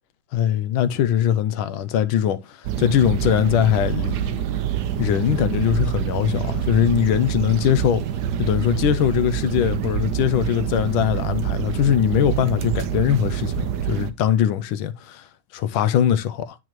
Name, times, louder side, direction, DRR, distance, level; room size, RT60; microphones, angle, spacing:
voice 1, 0.3-4.5 5.0-8.0 8.4-15.3 15.5-16.6, left 10 dB, 75° left, 1.4 m, -21 dB
sound 1, 2.6-14.1, right 10 dB, 70° right, 1.0 m, -26 dB
9.0 x 6.2 x 3.0 m
omnidirectional pair, 2.3 m